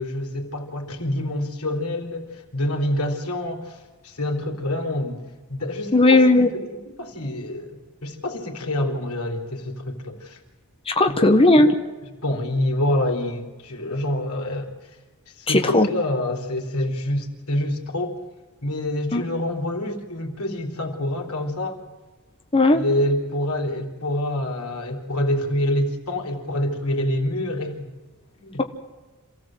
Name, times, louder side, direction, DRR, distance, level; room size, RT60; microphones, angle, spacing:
voice 1, 0.0-5.2 5.5-10.4 11.2-11.3 12.2-14.8 15.4-18.2 18.6-21.8 22.7-27.9 28.4-28.6, left 1 dB, 90° left, 2 dB, 3.6 m, -27 dB
voice 2, 5.9-6.5 10.9-11.8 15.5-15.9 19.1-19.2 22.5-22.8, left 2 dB, 25° left, 5 dB, 1.1 m, -16 dB
27.0 x 16.0 x 7.8 m, 1.3 s
head